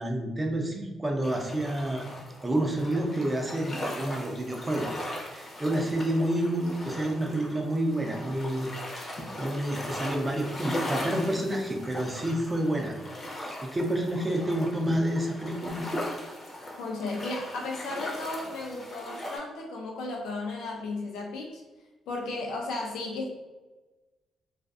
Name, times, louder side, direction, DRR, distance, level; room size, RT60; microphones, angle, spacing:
voice 1, 0.0-2.1 2.4-4.9 5.2-8.7 9.0-12.9 13.3-15.8, right 1 dB, 20° right, 2 dB, 0.5 m, -29 dB
sound 1, 1.2-19.4, left 1 dB, 35° left, 0.6 m, -38 dB
voice 2, 16.8-21.6 22.1-23.3, left 2 dB, 85° left, 0 dB, 0.6 m, -34 dB
2.4 x 2.4 x 2.3 m, 1.2 s
cardioid pair, 90°, 0 cm